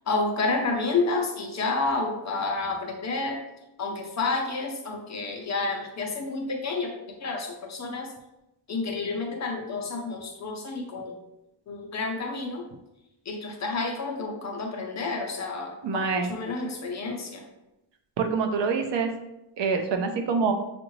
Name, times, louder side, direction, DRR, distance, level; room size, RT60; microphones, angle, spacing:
voice 1, 0.1-3.4 3.8-8.1 8.7-11.1 11.7-12.6 13.3-17.4, left 3 dB, 35° left, 1 dB, 0.6 m, -30 dB
voice 2, 15.8-16.3 18.2-19.1 19.6-20.5, right 5 dB, 60° right, 5 dB, 0.6 m, -25 dB
6.4 x 2.5 x 3.1 m, 0.92 s
wide cardioid pair, 170°, 48 cm